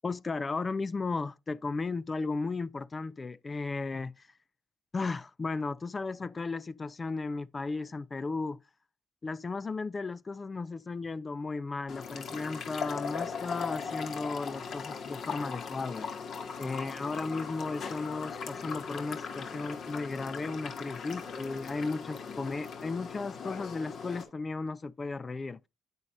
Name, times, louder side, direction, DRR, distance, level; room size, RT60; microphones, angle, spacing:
voice 1, 0.0-4.3 4.9-8.6 9.2-16.1 16.6-25.7, left 3 dB, 30° left, 0.4 m, -35 dB
sound 1, 11.9-24.2, left 5 dB, 60° left, 2.0 m, -39 dB
9.3 x 9.0 x 2.6 m
cardioid pair, 95°, 0 cm